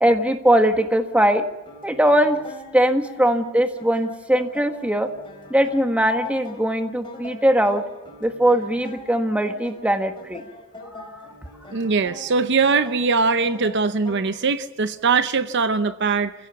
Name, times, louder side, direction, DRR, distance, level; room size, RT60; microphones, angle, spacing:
voice 1, 0.0-1.4 1.8-2.4 2.7-5.1 5.5-7.8 8.2-10.4 10.9-11.2, right 1 dB, 5° right, 1.6 m, -20 dB
sound 1, 1.7-14.4, left 2 dB, 25° left, 4.4 m, -42 dB
voice 2, 11.7-16.3, right 4 dB, 60° right, 0.7 m, -21 dB
27.0 x 16.0 x 7.1 m
head